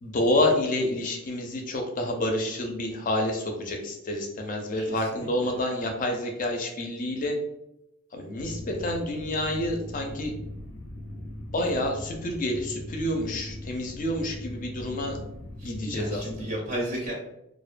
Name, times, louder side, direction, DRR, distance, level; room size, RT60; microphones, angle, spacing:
voice 1, 0.0-7.4 8.1-10.3 11.5-15.2 15.6-16.5, left 1 dB, 40° left, 3 dB, 0.4 m, -28 dB
voice 2, 4.8-5.3 5.5-5.6 15.6-17.1, right 1 dB, 35° right, -4 dB, 0.4 m, -34 dB
sound 1, 8.4-16.4, left 1 dB, 85° left, 0.5 m, -39 dB
2.5 x 2.1 x 2.4 m, 0.86 s
head